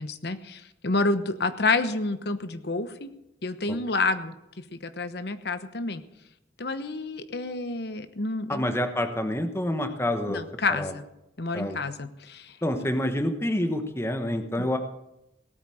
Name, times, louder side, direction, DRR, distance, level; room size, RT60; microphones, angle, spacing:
voice 1, 0.0-3.1 3.4-6.0 6.6-8.7 10.3-11.0 11.4-12.9, left 3 dB, 65° left, 11 dB, 1.0 m, -29 dB
voice 2, 8.5-10.4 10.7-10.9 11.5-11.8 12.6-14.8, left 1 dB, 15° left, 7 dB, 1.1 m, -27 dB
18.0 x 9.0 x 6.4 m, 0.88 s
head